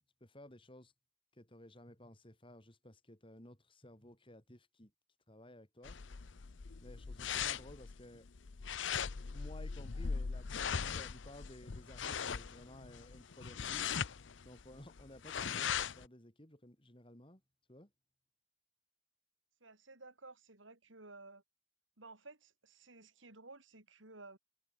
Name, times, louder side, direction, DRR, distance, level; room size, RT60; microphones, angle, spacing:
voice 1, 0.2-0.9 1.3-4.9 5.3-6.0 6.8-8.3 8.9-13.9 14.4-17.4 17.7-17.9, left 1 dB, 25° left, 4.5 m, -56 dB
sound 1, 5.8-16.1, left 7 dB, 70° left, 0.7 m, -40 dB
voice 2, 19.6-21.4 22.0-24.4, right 3 dB, 80° right, 4.9 m, -55 dB
head